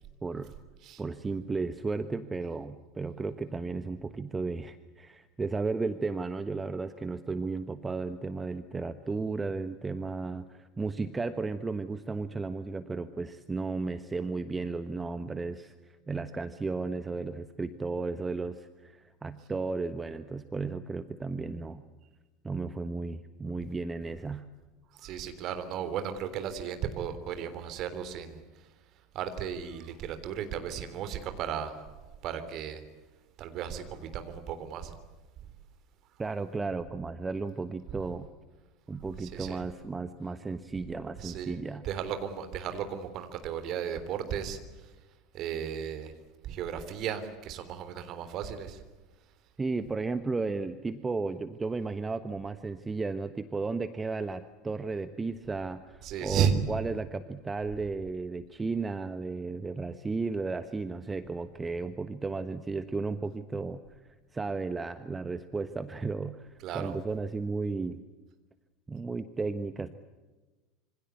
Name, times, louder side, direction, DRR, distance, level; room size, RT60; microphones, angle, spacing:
voice 1, 0.2-0.5 1.0-21.8 22.4-24.4 36.2-38.3 38.9-41.8 49.6-64.0 64.3-68.0 68.9-69.9, right 3 dB, 15° right, 11 dB, 1.2 m, -34 dB
voice 2, 25.0-28.4 29.2-31.7 32.2-32.8 33.4-34.9 39.3-39.6 41.2-41.6 41.8-44.6 45.3-46.1 46.4-48.8 56.0-56.5 66.6-66.9, right 8 dB, 45° right, 9 dB, 3.4 m, -34 dB
27.0 x 25.0 x 8.4 m, 1.2 s
figure-of-eight pair, 75°, 0 cm